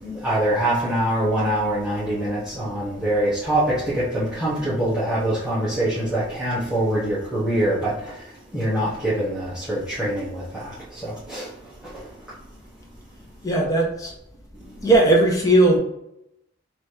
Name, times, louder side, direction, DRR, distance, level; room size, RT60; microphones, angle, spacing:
voice 1, 0.0-12.1 14.6-15.0, right 1 dB, 5° right, -12 dB, 1.1 m, -24 dB
voice 2, 13.4-14.1 14.8-15.8, right 1 dB, 20° left, 0 dB, 0.8 m, -17 dB
3.3 x 3.0 x 4.4 m, 0.80 s
head